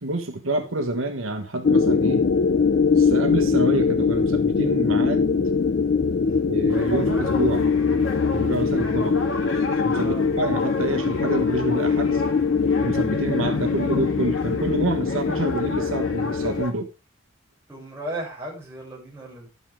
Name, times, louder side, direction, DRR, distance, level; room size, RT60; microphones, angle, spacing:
voice 1, 0.0-2.3 3.0-5.3 6.5-7.7 8.3-9.2 9.8-12.2 12.8-16.9, right 2 dB, 85° right, 1.3 m, -27 dB
sound 1, 1.6-16.6, left 5 dB, 50° left, 0.4 m, -22 dB
sound 2, 6.7-16.7, left 2 dB, 75° left, 2.1 m, -34 dB
voice 2, 17.7-19.5, right 1 dB, 15° right, 7.3 m, -36 dB
12.0 x 9.4 x 3.7 m
head